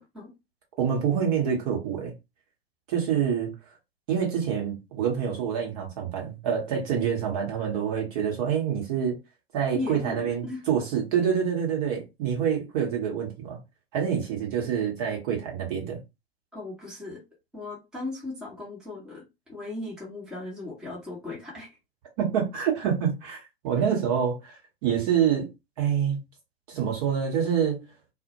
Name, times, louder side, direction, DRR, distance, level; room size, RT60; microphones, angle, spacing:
voice 1, 0.8-2.1 2.9-3.6 4.1-9.2 9.5-13.6 13.9-16.0 22.2-25.5 25.8-26.2 26.7-27.8, right 8 dB, 35° right, 0.9 m, -26 dB
voice 2, 9.7-10.6 16.5-17.2 17.5-19.2 19.5-21.7, left 2 dB, ahead, 0.8 m, -36 dB
2.1 x 2.1 x 2.8 m
figure-of-eight pair, 105°, 31 cm